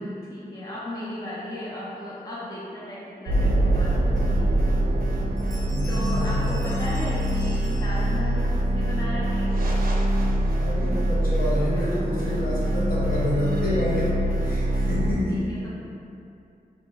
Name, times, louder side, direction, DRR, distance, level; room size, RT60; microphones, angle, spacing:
voice 1, 0.0-4.6 5.9-9.6 15.3-15.7, left 1 dB, 25° left, -8 dB, 0.6 m, -35 dB
sound 1, 3.3-15.1, right 1 dB, 65° right, 0.5 m, -24 dB
Bell, 5.0-5.1 5.4-8.5, left 1 dB, 25° right, 0.6 m, -46 dB
voice 2, 5.6-6.6 10.6-14.2 14.4-15.7, equal, 65° left, -8 dB, 1.0 m, -28 dB
6.0 x 2.1 x 2.2 m, 2.6 s
wide cardioid pair, 90°, 16 cm